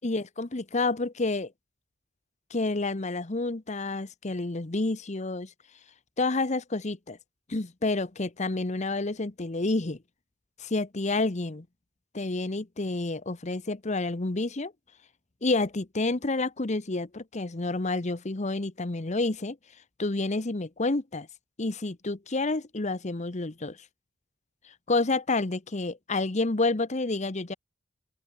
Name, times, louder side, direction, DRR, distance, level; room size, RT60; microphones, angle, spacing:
voice 1, 0.0-1.5 2.5-5.5 6.2-7.2 7.5-10.0 10.6-11.6 12.1-14.7 15.4-19.6 20.0-21.3 21.6-23.8 24.9-27.5, left 2 dB, 40° left, 1.0 m, -29 dB
open air
head